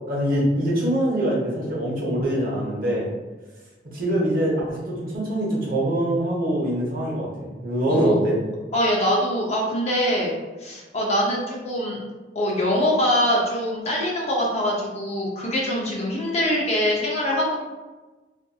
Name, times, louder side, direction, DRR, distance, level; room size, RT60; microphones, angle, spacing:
voice 1, 0.1-3.1 3.8-8.4, right 1 dB, 55° right, -5 dB, 0.8 m, -24 dB
voice 2, 7.9-8.2 8.7-10.3 10.6-12.0 12.3-17.6, equal, 35° left, -3 dB, 0.5 m, -23 dB
2.6 x 2.5 x 2.3 m, 1.2 s
head